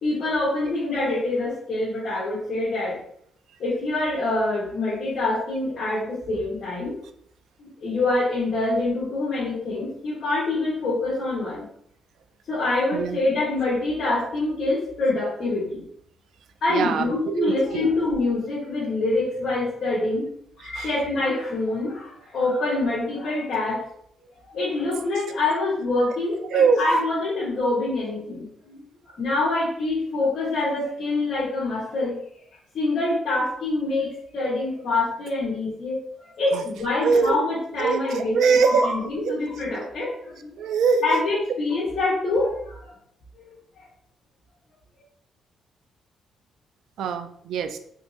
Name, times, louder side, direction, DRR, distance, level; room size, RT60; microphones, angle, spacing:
voice 1, 0.0-3.0 3.6-7.0 7.6-11.7 12.5-15.8 16.6-20.3 20.6-23.8 24.5-28.8 29.2-32.1 32.7-36.0 36.2-40.5 41.0-42.9 43.3-43.8, left 2 dB, 45° left, -8 dB, 1.1 m, -25 dB
voice 2, 16.7-17.9 20.7-20.9 26.5-26.8 36.5-36.6 37.0-37.4 37.8-38.9 39.2-39.4 40.6-41.2 47.0-47.8, right 5 dB, 70° right, 10 dB, 0.3 m, -22 dB
3.5 x 3.0 x 2.7 m, 0.68 s
cardioid pair, 165°, 0 cm